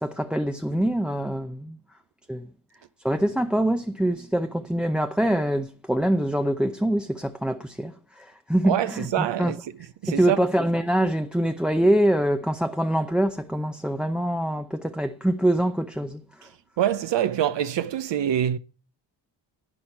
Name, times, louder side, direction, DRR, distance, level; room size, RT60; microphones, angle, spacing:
voice 1, 0.0-1.8 2.3-2.5 3.0-9.5 10.1-16.5, right 1 dB, ahead, 0.5 m, -24 dB
voice 2, 8.6-9.6 10.0-10.4 16.8-18.6, right 10 dB, 65° right, 0.8 m, -25 dB
11.0 x 9.4 x 5.8 m
cardioid pair, 110°, 47 cm